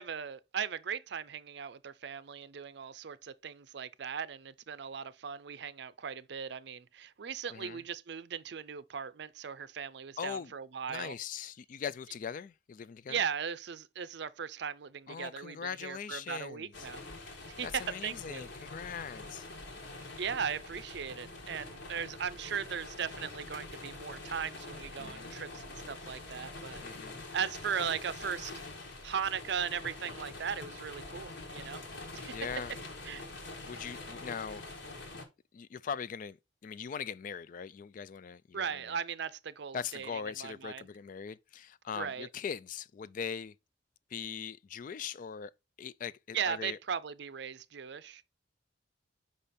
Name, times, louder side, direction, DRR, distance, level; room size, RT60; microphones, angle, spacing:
voice 1, 0.0-11.1 13.1-17.0 17.5-18.5 20.2-26.8 27.3-28.5 29.0-31.8 32.1-32.4 33.1-33.3 38.5-40.9 41.9-42.3 46.3-48.2, right 7 dB, 60° right, 0.5 m, -38 dB
voice 2, 7.5-7.8 10.2-10.5 10.9-13.2 15.1-16.9 17.6-19.5 25.0-25.3 26.8-27.2 32.3-32.7 33.7-34.7 35.5-36.4 36.6-39.0 39.7-43.5 44.1-45.5 45.8-46.8, left 7 dB, 45° left, 0.3 m, -41 dB
sound 1, 16.7-35.2, left 2 dB, 70° left, 1.7 m, -45 dB
5.4 x 5.2 x 4.1 m
head